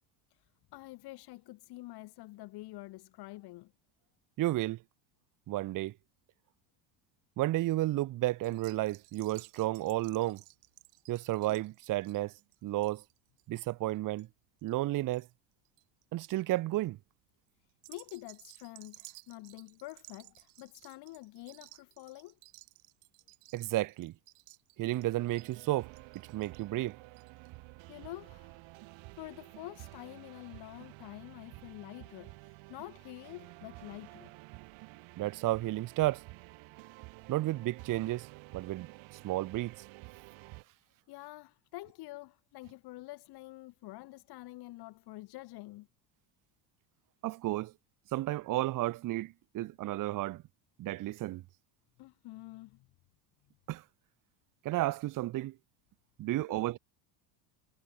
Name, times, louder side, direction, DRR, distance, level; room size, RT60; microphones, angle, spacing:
voice 1, 0.7-3.7 17.9-22.4 27.9-28.6 29.2-34.3 41.1-45.9 52.0-52.9 56.2-56.4, left 19 dB, 55° left, 1.5 m, -47 dB
voice 2, 4.4-4.8 5.5-5.9 7.4-10.4 11.1-12.3 12.6-13.0 13.5-14.3 14.6-15.3 16.1-17.0 23.5-24.1 24.8-25.9 26.3-27.0 35.2-36.2 37.3-38.3 38.5-38.9 39.2-39.7 47.2-47.7 48.1-50.4 50.8-51.4 53.7-53.8 54.6-55.5 56.2-56.8, right 16 dB, 40° right, 1.0 m, -32 dB
sound 1, 8.4-15.2 15.5-16.0 16.6-16.9 17.7-27.5 27.8-27.9 28.1-28.2, right 40 dB or more, 85° right, 3.8 m, -57 dB
sound 2, 24.9-40.6, right 24 dB, 65° right, 7.6 m, -51 dB
cardioid pair, 145°, 48 cm